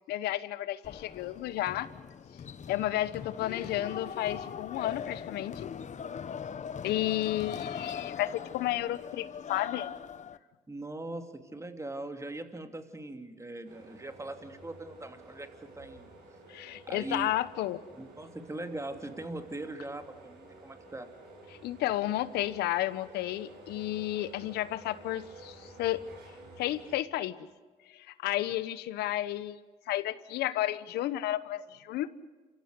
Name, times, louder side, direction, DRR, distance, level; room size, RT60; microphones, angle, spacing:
voice 1, 0.1-1.9 2.7-5.7 6.8-9.9 16.5-17.8 21.6-26.0 26.6-27.5 27.9-29.6 29.9-32.1, left 14 dB, 80° left, 16 dB, 1.0 m, -32 dB
sound 1, 0.8-10.4, left 7 dB, 45° left, 1.0 m, -41 dB
voice 2, 10.7-15.5 15.8-16.1 16.8-17.3 17.9-21.1, right 2 dB, 15° right, 6 dB, 2.9 m, -40 dB
sound 2, 13.6-26.9, right 1 dB, 80° right, 5.7 m, -52 dB
28.0 x 15.5 x 8.2 m, 1.4 s
supercardioid pair, 65°, 17 cm